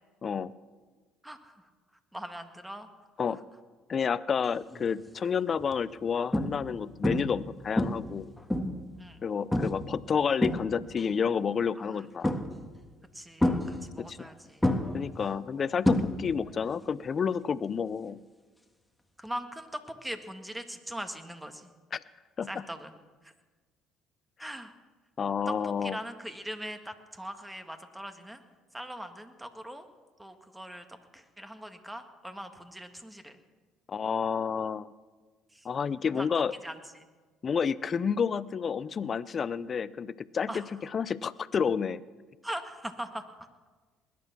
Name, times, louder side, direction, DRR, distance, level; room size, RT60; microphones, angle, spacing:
voice 1, 0.2-0.5 3.2-3.4 3.9-8.3 9.2-12.3 14.0-14.3 14.9-18.2 21.9-22.0 22.4-22.6 25.2-26.0 33.9-34.9 35.6-36.5 37.4-40.6 40.9-42.0, left 6 dB, 45° left, 18 dB, 0.6 m, -30 dB
voice 2, 1.2-1.7 2.1-2.9 3.3-3.4 9.0-9.3 11.8-12.0 13.1-14.8 19.2-21.7 22.5-22.9 23.2-23.3 24.4-24.7 25.5-28.4 28.7-29.9 30.2-33.4 35.5-35.7 36.1-36.3 36.6-37.1 40.5-40.7 42.4-43.2, equal, 10° right, 8 dB, 1.8 m, -41 dB
sound 1, 4.7-5.0 5.6-5.7 6.3-6.8 7.0-7.4 7.8-8.9 9.5-9.9 10.2-11.0 12.2-12.8 13.4-14.3 14.6-16.5 16.8-17.2 19.3-19.4, left 1 dB, 5° left, 1.7 m, -28 dB
20.5 x 10.5 x 6.0 m, 1.4 s
supercardioid pair, 70°, 0 cm